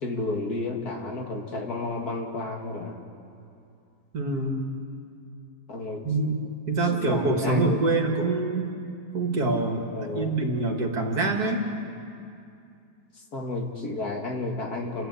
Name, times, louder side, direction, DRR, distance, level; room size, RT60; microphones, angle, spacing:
voice 1, 0.0-3.0 5.7-6.0 6.9-7.8 9.9-10.3 13.3-15.1, left 2 dB, 65° left, 1 dB, 2.4 m, -31 dB
voice 2, 4.1-4.7 6.0-8.7 9.1-9.9 10.1-11.6, right 3 dB, 65° right, 2 dB, 2.5 m, -25 dB
29.5 x 12.5 x 8.4 m, 2.5 s
omnidirectional pair, 1.8 m